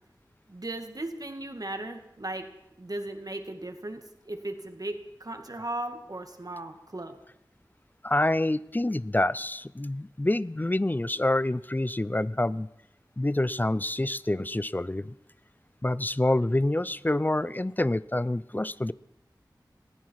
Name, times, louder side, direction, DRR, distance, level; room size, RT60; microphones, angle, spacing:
voice 1, 0.5-2.5 2.8-7.2, right 1 dB, 50° right, 6 dB, 2.2 m, -37 dB
voice 2, 8.0-12.7 13.2-15.1 15.8-18.9, left 1 dB, 25° left, 18 dB, 0.5 m, -27 dB
20.0 x 15.0 x 4.8 m, 0.87 s
wide cardioid pair, 45°, 8 cm